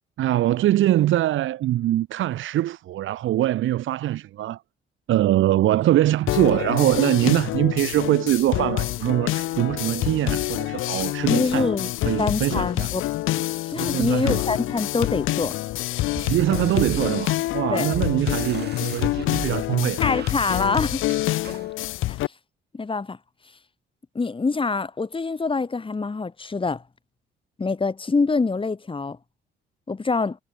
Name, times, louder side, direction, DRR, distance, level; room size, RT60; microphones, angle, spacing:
voice 1, 0.2-4.6 5.1-11.7 12.0-12.9 13.7-14.5 16.2-20.0, right 14 dB, 80° right, 2.3 m, -23 dB
sound 1, 6.3-22.3, left 16 dB, 90° left, 1.2 m, -27 dB
voice 2, 11.3-11.9 12.2-13.1 13.3-15.6 17.7-18.0 20.0-21.0 21.5-21.6 22.1-22.2 22.7-23.2 24.2-26.8 27.6-29.2 29.9-30.4, left 4 dB, 25° left, 3.8 m, -25 dB
sound 2, 16.2-21.7, right 8 dB, 55° right, 6.5 m, -40 dB
cardioid pair, 90°, 20 cm